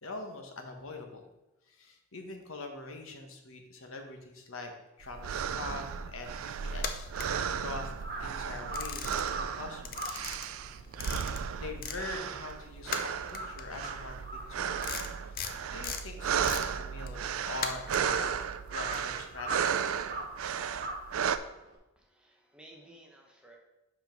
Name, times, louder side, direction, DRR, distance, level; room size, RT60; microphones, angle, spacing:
voice 1, 0.0-1.2 1.6-4.7 5.0-10.2 11.2-11.3 11.6-14.9 15.1-19.7, left 2 dB, 70° left, 4 dB, 1.2 m, -43 dB
sound 1, 5.0-21.4, right 7 dB, 75° right, 0.4 m, -34 dB
Crow, 6.3-12.8 13.1-21.8, right 1 dB, 45° right, 1.3 m, -43 dB
sound 2, 6.7-8.0 8.4-9.5 9.8-12.0 12.3-18.2, left 6 dB, 40° left, 0.6 m, -39 dB
voice 2, 22.0-23.6, right 1 dB, 5° right, 0 dB, 0.9 m, -55 dB
5.6 x 5.6 x 5.3 m, 0.95 s
head